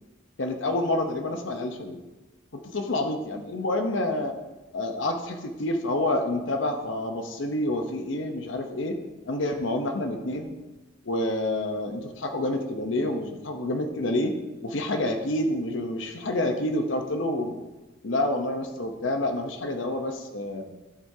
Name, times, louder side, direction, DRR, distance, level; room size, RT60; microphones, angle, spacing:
voice 1, 0.4-2.0 2.5-4.3 4.7-9.0 9.3-10.6 11.0-14.3 14.6-17.5 18.0-20.6, left 1 dB, 70° left, 5 dB, 0.8 m, -28 dB
12.5 x 7.7 x 2.8 m, 1.1 s
head